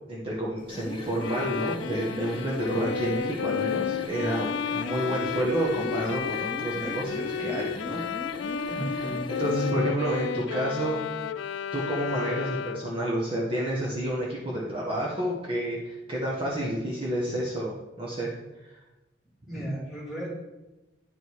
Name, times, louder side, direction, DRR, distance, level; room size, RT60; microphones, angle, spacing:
voice 1, 0.1-8.0 9.4-11.0 11.7-17.7 18.0-18.3 18.6-18.8 19.5-19.6, right 1 dB, 30° right, -6 dB, 1.5 m, -30 dB
sound 1, 0.6-9.8, left 2 dB, 25° left, 0.6 m, -38 dB
Bowed string instrument, 1.2-13.0, left 7 dB, 75° left, 0.3 m, -32 dB
voice 2, 8.7-9.3 9.7-9.8 19.5-20.3, right 1 dB, ahead, -7 dB, 2.8 m, -35 dB
10.0 x 5.3 x 4.7 m, 1.0 s
head